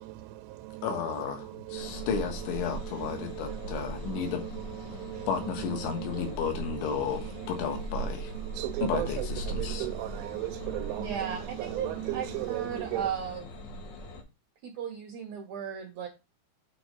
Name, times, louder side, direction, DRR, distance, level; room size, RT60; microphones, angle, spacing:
voice 1, 0.0-0.9 1.4-2.1 2.8-4.3 4.9-5.3 5.8-6.3 6.9-7.0 7.4-7.5 8.4-9.3 9.6-13.0, right 17 dB, 90° right, 3.1 m, -37 dB
voice 2, 0.8-4.4 5.3-8.3 8.8-9.9, left 7 dB, 80° left, 3.8 m, -33 dB
sound 1, 1.8-14.2, right 1 dB, 60° left, 2.2 m, -40 dB
voice 3, 11.0-13.5 14.6-16.1, right 8 dB, 70° right, 1.7 m, -36 dB
8.8 x 4.0 x 5.2 m
omnidirectional pair, 5.4 m